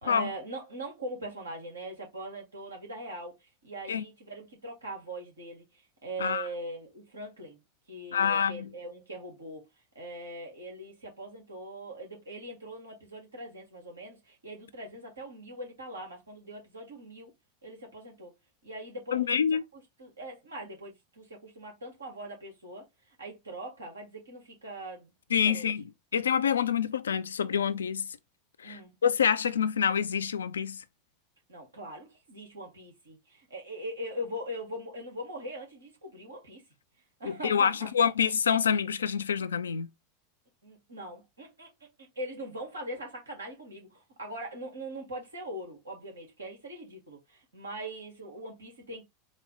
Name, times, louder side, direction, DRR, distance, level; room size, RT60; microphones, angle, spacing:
voice 1, 0.0-5.6 6.0-7.6 7.9-9.6 9.9-17.3 17.6-18.3 18.6-19.4 20.0-22.9 23.2-25.1 25.4-25.7 28.6-28.9 31.5-36.6 37.2-37.9 40.6-41.7 42.0-49.0, right 1 dB, 80° right, 1.6 m, -41 dB
voice 2, 8.1-8.7 19.1-19.6 25.3-25.9 26.1-28.1 28.6-30.8 37.3-39.9, left 7 dB, 75° left, 0.3 m, -27 dB
4.1 x 2.1 x 3.9 m
figure-of-eight pair, 85°, 0 cm